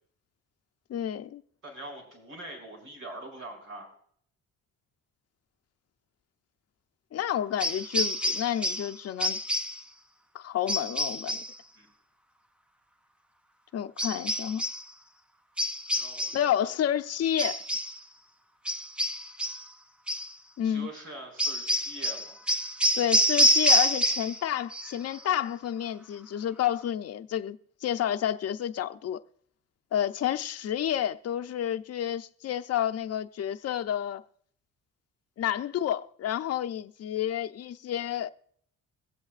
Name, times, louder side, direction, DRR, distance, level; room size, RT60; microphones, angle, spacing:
voice 1, 0.9-1.4 7.1-9.4 10.3-11.4 13.7-14.6 16.3-17.6 20.6-20.9 22.9-29.2 29.9-34.2 35.4-38.3, left 10 dB, 55° left, 0.6 m, -30 dB
voice 2, 1.6-3.9 11.7-11.9 15.9-16.7 20.6-22.4, right 1 dB, 75° right, 5.3 m, -43 dB
sound 1, 7.6-8.9 9.2-9.8 10.7-11.5 14.0-14.8 15.6-16.5 17.4-18.0 18.7-19.7 20.1-20.3 21.4-24.4 24.7-25.2, equal, 5° right, 0.3 m, -27 dB
23.0 x 8.0 x 2.4 m
cardioid pair, 90°, 30 cm